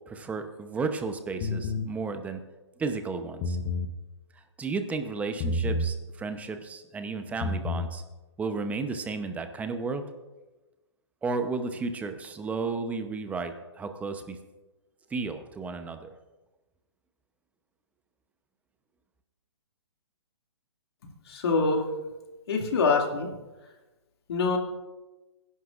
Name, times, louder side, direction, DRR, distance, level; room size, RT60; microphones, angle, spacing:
voice 1, 0.1-2.4 2.8-3.6 4.6-8.0 8.4-10.0 11.2-14.4 15.1-16.1, right 4 dB, 10° right, 8 dB, 0.8 m, -33 dB
sound 1, 1.4-1.9 3.3-3.9 5.4-5.9 7.3-7.9, left 2 dB, 30° left, 0.9 m, -29 dB
voice 2, 21.3-21.8 22.5-23.4 24.3-24.6, left 4 dB, 60° left, 1 dB, 2.5 m, -25 dB
23.0 x 11.0 x 2.5 m, 1.1 s
hypercardioid pair, 135°, 15 cm